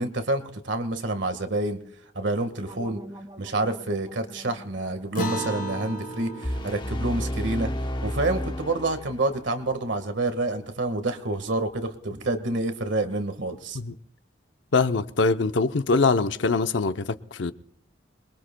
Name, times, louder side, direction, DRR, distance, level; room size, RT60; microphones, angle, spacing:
voice 1, 0.0-1.8 2.1-3.0 3.4-7.7 8.0-13.8, right 2 dB, 80° right, 1.6 m, -28 dB
sound 1, 2.6-7.5, right 1 dB, 20° right, 1.9 m, -47 dB
Acoustic guitar, 5.1-10.0, equal, 50° left, 2.4 m, -37 dB
sound 2, 6.4-9.5, equal, 25° left, 0.9 m, -31 dB
voice 2, 14.7-17.5, left 3 dB, 80° left, 0.7 m, -23 dB
26.5 x 22.0 x 2.3 m
head